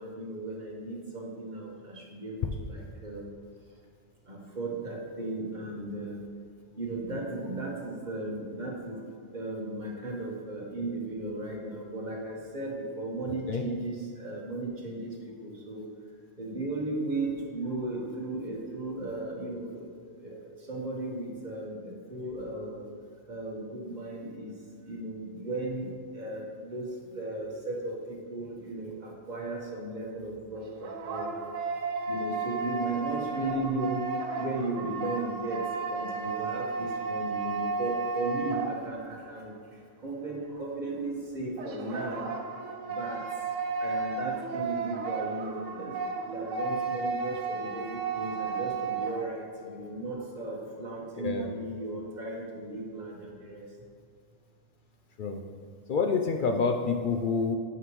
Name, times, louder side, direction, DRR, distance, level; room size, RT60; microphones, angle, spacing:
voice 1, 0.0-3.3 4.3-6.2 6.8-9.0 9.3-15.2 15.4-15.9 16.4-19.9 20.2-22.8 23.3-24.5 24.8-31.4 32.1-39.5 40.0-42.3 42.8-43.2 43.8-53.7, right 2 dB, 40° right, -2 dB, 1.4 m, -36 dB
sound 1, 30.5-39.3 41.6-49.3, right 4 dB, 85° right, 1.1 m, -33 dB
voice 2, 55.9-57.6, left 5 dB, 60° left, 4 dB, 0.5 m, -27 dB
9.1 x 5.9 x 3.1 m, 2.2 s
omnidirectional pair, 1.3 m